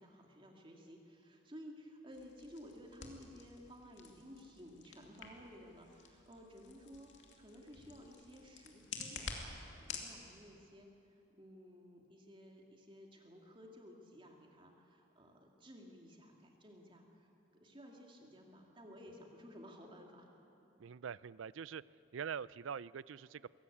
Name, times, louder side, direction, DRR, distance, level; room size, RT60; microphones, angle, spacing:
voice 1, 0.0-7.1 7.4-20.3, equal, 25° right, 1 dB, 2.5 m, -55 dB
sound 1, 2.1-10.1, left 5 dB, 65° left, 2.6 m, -50 dB
voice 2, 20.8-21.8 22.1-23.5, right 7 dB, 75° right, 20 dB, 0.4 m, -44 dB
22.5 x 17.5 x 8.6 m, 2.9 s
head